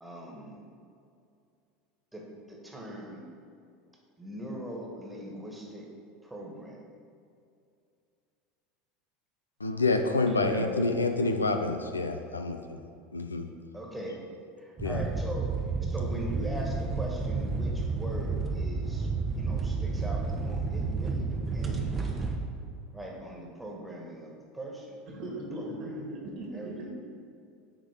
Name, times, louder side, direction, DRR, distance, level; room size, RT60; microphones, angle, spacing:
voice 1, 0.0-0.6 2.1-3.2 4.2-5.9 6.2-6.8 13.7-14.2 14.6-15.5 15.8-22.2 22.9-26.1 26.5-26.9, right 1 dB, 10° right, -2 dB, 1.6 m, -41 dB
voice 2, 9.6-12.8 13.1-13.5 14.8-15.0, left 3 dB, 85° left, 7 dB, 0.4 m, -28 dB
voice 3, 10.3-11.0 25.1-26.9, right 1 dB, 50° right, -1 dB, 1.8 m, -38 dB
sound 1, 14.8-22.4, right 4 dB, 30° right, 0.9 m, -31 dB
8.7 x 3.7 x 5.1 m, 2.4 s
figure-of-eight pair, 75°, 0 cm